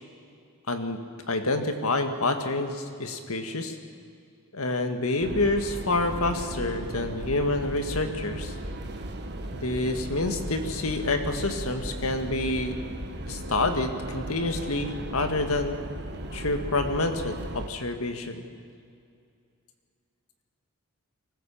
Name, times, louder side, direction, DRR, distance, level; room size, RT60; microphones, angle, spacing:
voice 1, 0.7-1.0 1.3-3.7 4.5-8.5 9.5-12.8 13.3-15.8 16.3-18.4, left 2 dB, 70° left, 7 dB, 1.8 m, -28 dB
sound 1, 5.2-17.7, right 1 dB, 50° right, 1.6 m, -36 dB
24.5 x 15.0 x 7.1 m, 2.4 s
head